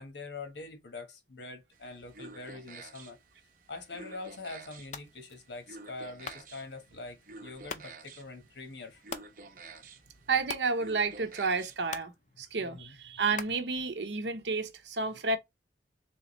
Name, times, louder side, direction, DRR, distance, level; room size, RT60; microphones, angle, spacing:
voice 1, 0.0-3.2 3.7-9.0 12.6-13.0, left 3 dB, 80° left, 1.1 m, -44 dB
sound 1, 1.7-12.0, right 3 dB, 50° right, 0.7 m, -51 dB
sound 2, 4.8-14.5, left 6 dB, 40° left, 0.4 m, -48 dB
voice 2, 10.3-12.1 12.4-15.4, right 4 dB, 80° right, 0.8 m, -31 dB
3.6 x 3.1 x 2.9 m
head